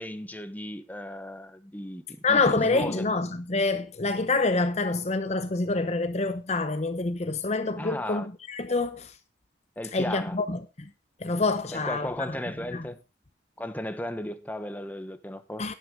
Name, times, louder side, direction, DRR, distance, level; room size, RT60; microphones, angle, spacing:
voice 1, 0.0-3.1 7.8-8.3 9.8-10.4 11.7-13.0 13.6-15.7, left 1 dB, 10° left, 1.0 m, -35 dB
voice 2, 2.2-9.1 9.9-10.9 11.2-12.1 12.7-12.8 15.6-15.7, left 3 dB, 40° left, 0.7 m, -27 dB
11.5 x 11.0 x 3.7 m
head